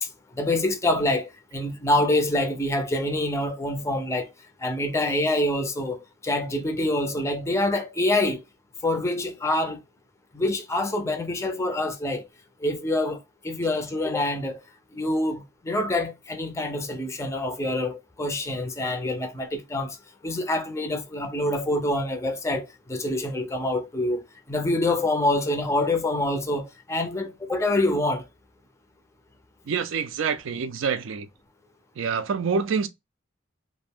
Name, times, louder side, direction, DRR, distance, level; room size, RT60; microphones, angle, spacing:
voice 1, 0.0-4.3 4.6-8.4 8.8-9.8 10.3-12.3 12.6-14.6 14.9-20.0 20.2-24.2 24.5-28.3, left 1 dB, 15° left, 0.4 m, -26 dB
voice 2, 29.7-31.3 32.0-32.9, right 6 dB, 70° right, 0.4 m, -26 dB
2.4 x 2.1 x 3.4 m
head